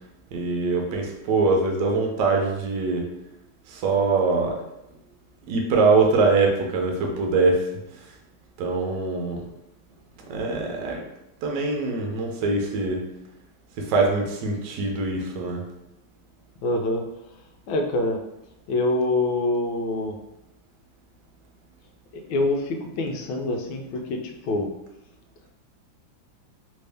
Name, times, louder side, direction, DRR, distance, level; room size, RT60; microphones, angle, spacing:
voice 1, 0.3-3.1 3.7-4.6 5.5-7.7 8.0-8.1 8.6-9.4 10.3-11.0 11.4-13.0 13.8-15.7, right 3 dB, 70° right, 1 dB, 1.2 m, -23 dB
voice 2, 16.6-17.0 17.7-18.2 18.7-20.2 22.1-24.2 24.4-24.7, left 2 dB, 80° left, 3 dB, 1.3 m, -25 dB
3.4 x 2.6 x 3.3 m, 0.85 s
omnidirectional pair, 2.2 m